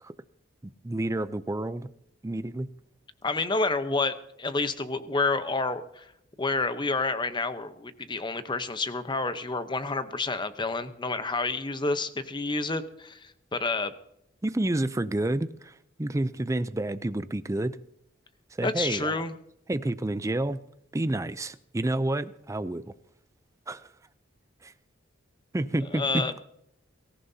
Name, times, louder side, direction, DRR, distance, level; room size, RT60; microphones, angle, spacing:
voice 1, 0.6-1.9 2.2-2.7 14.4-15.7 16.0-17.8 18.6-19.1 19.7-20.6 20.9-22.9 23.7-23.8 24.6-24.7 25.5-26.2, right 1 dB, 15° right, 14 dB, 0.5 m, -29 dB
voice 2, 3.2-6.1 6.4-13.9 18.6-19.4 25.9-26.4, left 3 dB, 25° left, 11 dB, 0.9 m, -29 dB
23.5 x 14.5 x 2.8 m, 0.76 s
head